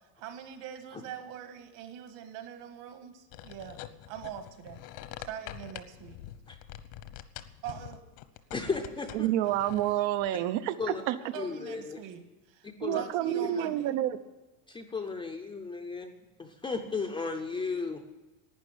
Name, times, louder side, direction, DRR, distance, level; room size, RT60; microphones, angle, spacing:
voice 1, 0.2-3.8 4.1-4.8 5.2-6.2 7.6-8.0 11.3-13.9, right 9 dB, 65° right, 7 dB, 2.0 m, -43 dB
sound 1, 3.3-10.3, left 12 dB, 75° left, 1.1 m, -45 dB
voice 2, 8.5-9.3 10.8-11.0 11.4-12.0 12.8-13.0 13.4-13.7 14.7-18.1, left 4 dB, 10° left, 4 dB, 0.4 m, -35 dB
voice 3, 9.1-10.7 11.1-11.2 12.8-14.2, right 13 dB, 90° right, 10 dB, 0.9 m, -28 dB
12.0 x 9.3 x 9.8 m, 1.1 s
cardioid pair, 175°, 47 cm